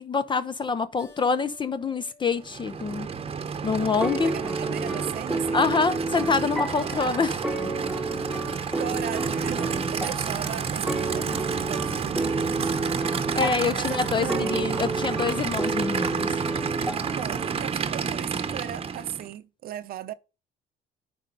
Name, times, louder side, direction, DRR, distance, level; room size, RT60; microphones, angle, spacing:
voice 1, 0.0-3.1 3.6-4.3 5.5-7.4 13.4-16.3, left 5 dB, 30° left, 0.6 m, -26 dB
Keyboard (musical), 1.0-3.9, left 4 dB, 90° left, 4.4 m, -55 dB
Aircraft / Idling, 2.4-19.3, right 6 dB, 35° right, 0.9 m, -30 dB
sound 1, 4.0-17.7, right 3 dB, ahead, 1.2 m, -31 dB
voice 2, 4.2-5.7 8.8-12.8 13.1-14.5 17.1-20.1, right 11 dB, 60° right, 0.7 m, -37 dB
9.5 x 5.3 x 4.0 m
cardioid pair, 110°, 17 cm